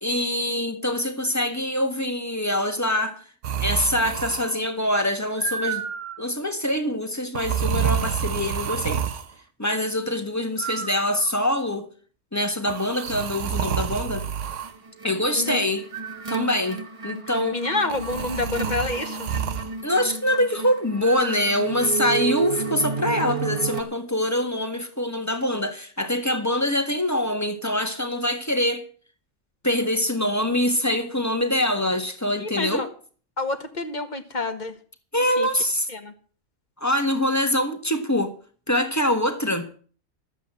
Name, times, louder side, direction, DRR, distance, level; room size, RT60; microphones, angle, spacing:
voice 1, 0.0-3.2 3.6-5.8 6.2-9.0 9.6-11.9 12.3-14.3 15.0-15.9 16.3-17.6 19.8-28.8 29.6-32.9 35.1-35.9 36.8-38.3 38.7-39.7, left 1 dB, 15° left, 1.5 m, -24 dB
sound 1, 3.4-4.7 5.3-6.3 7.3-9.3 10.6-11.5 12.7-14.7 15.9-16.7 17.9-19.7 21.0-21.5, right 8 dB, 65° right, 1.2 m, -29 dB
sound 2, 14.6-23.8, right 5 dB, 25° right, 1.0 m, -32 dB
voice 2, 15.3-15.7 17.5-19.3 32.4-32.9 33.4-34.7 35.4-35.5 35.9-36.1, left 2 dB, 35° left, 1.4 m, -28 dB
12.5 x 8.2 x 7.6 m
omnidirectional pair, 1.4 m